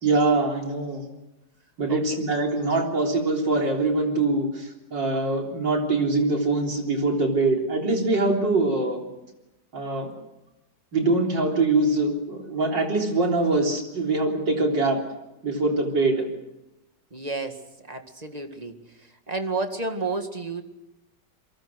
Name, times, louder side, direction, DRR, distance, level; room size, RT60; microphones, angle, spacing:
voice 1, 0.0-1.1 1.8-9.0 9.7-10.1 10.9-15.0 15.4-16.2, right 2 dB, 90° right, 1 dB, 4.3 m, -23 dB
voice 2, 17.1-18.8 19.3-20.6, right 3 dB, 20° right, 5 dB, 2.0 m, -31 dB
28.5 x 23.5 x 6.4 m, 0.95 s
omnidirectional pair, 1.9 m